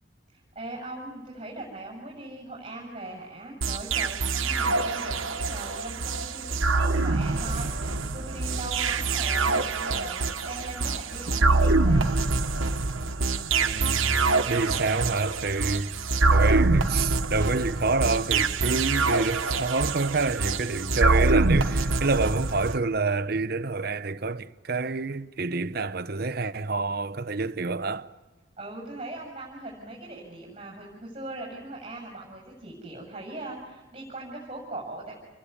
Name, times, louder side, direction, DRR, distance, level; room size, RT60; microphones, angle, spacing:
voice 1, 0.3-12.1 28.6-35.1, right 2 dB, 25° right, 7.4 m, -40 dB
sound 1, 3.6-22.8, right 3 dB, 85° right, 1.4 m, -25 dB
voice 2, 13.6-28.1, right 3 dB, 50° right, 0.8 m, -28 dB
29.5 x 21.0 x 8.5 m
head